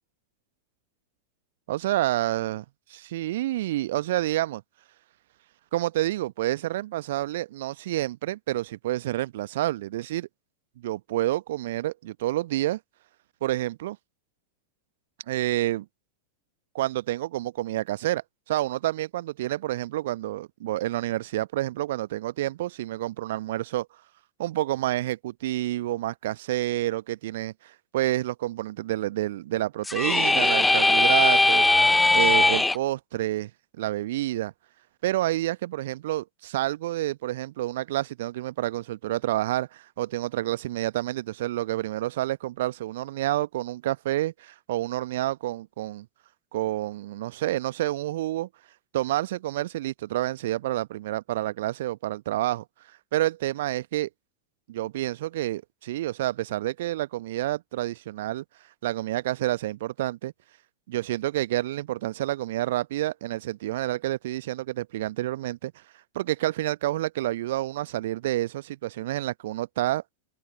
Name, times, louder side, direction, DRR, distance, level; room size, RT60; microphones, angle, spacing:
voice 1, 1.7-2.6 2.9-4.6 5.7-10.3 10.8-12.8 13.4-14.0 15.3-15.9 16.7-23.9 24.4-31.7 32.1-33.5 33.8-34.5 35.0-46.1 46.5-48.5 48.9-52.6 53.1-54.1 54.7-58.4 58.8-60.3 60.9-65.7 66.1-70.0, right 15 dB, 55° right, 1.0 m, -29 dB
sound 1, 29.8-32.8, left 2 dB, 5° left, 0.5 m, -20 dB
open air
figure-of-eight pair, 90°, 0 cm